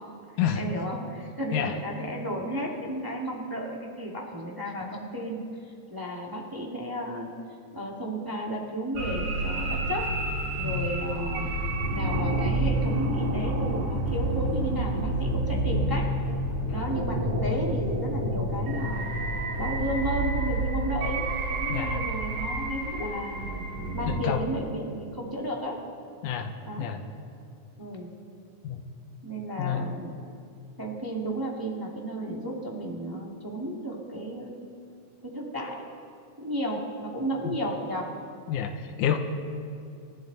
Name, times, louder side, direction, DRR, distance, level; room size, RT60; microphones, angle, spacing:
voice 1, 0.5-5.4 5.9-7.3 7.7-11.5 11.9-16.1 16.7-19.1 19.6-23.4 23.9-25.8 26.6-26.9 27.8-28.1 29.2-30.1 30.8-34.5 35.2-35.8 36.4-38.1, equal, 10° right, -2 dB, 1.2 m, -33 dB
sound 1, 8.9-24.2, right 1 dB, 60° right, 2.9 m, -29 dB
voice 2, 21.7-22.0 24.1-24.4 26.2-27.0 28.6-28.8 29.6-29.9 37.4-37.6 38.5-39.2, left 9 dB, 85° left, 5 dB, 2.3 m, -29 dB
28.0 x 12.0 x 4.0 m, 2.4 s
omnidirectional pair, 3.5 m